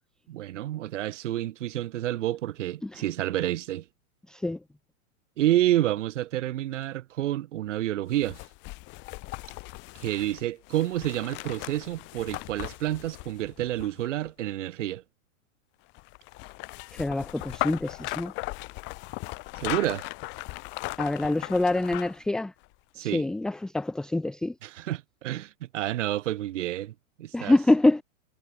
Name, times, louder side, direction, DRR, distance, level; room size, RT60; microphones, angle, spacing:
voice 1, 0.3-3.8 5.4-8.4 10.0-15.0 19.6-20.1 23.0-23.2 24.6-26.9 27.2-27.6, right 13 dB, 55° right, 2.4 m, -29 dB
voice 2, 4.3-4.6 16.9-18.3 21.0-22.5 23.0-24.5 27.3-28.0, left 2 dB, ahead, 0.8 m, -25 dB
sound 1, 8.1-14.3 15.9-22.3 22.6-22.7, left 25 dB, 25° left, 1.9 m, -38 dB
hypercardioid pair, 160°, 43 cm